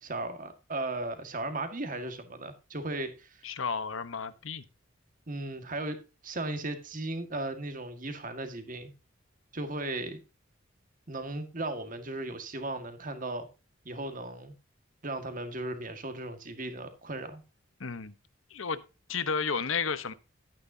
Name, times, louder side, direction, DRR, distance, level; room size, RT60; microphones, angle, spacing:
voice 1, 0.0-3.4 5.3-8.9 9.5-10.2 11.1-13.5 13.9-14.5 15.0-17.4, right 2 dB, 40° right, 1.8 m, -36 dB
voice 2, 3.4-4.6 17.8-18.1 18.5-18.8 19.1-20.1, left 5 dB, 80° left, 1.0 m, -32 dB
12.0 x 9.5 x 2.8 m
head